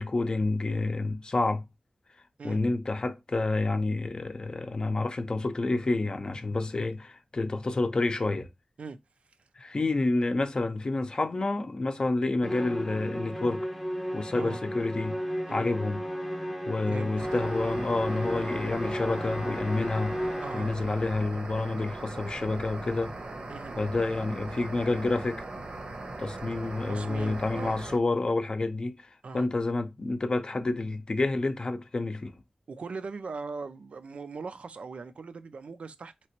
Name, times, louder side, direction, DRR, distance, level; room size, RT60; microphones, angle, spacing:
voice 1, 0.0-1.6 2.4-8.5 9.6-13.7 14.1-15.2 15.5-16.0 16.7-20.2 20.5-23.2 23.8-25.4 26.2-32.3, left 2 dB, 45° left, 0.5 m, -29 dB
Musical instrument, 12.4-20.9, equal, 5° left, 0.8 m, -34 dB
sound 1, 17.2-28.0, right 2 dB, 60° right, 0.7 m, -39 dB
voice 2, 20.4-20.7 23.5-23.8 26.9-27.8 29.2-29.5 32.7-36.3, right 4 dB, 80° right, 0.4 m, -40 dB
3.2 x 2.9 x 2.9 m
wide cardioid pair, 90°, 2 cm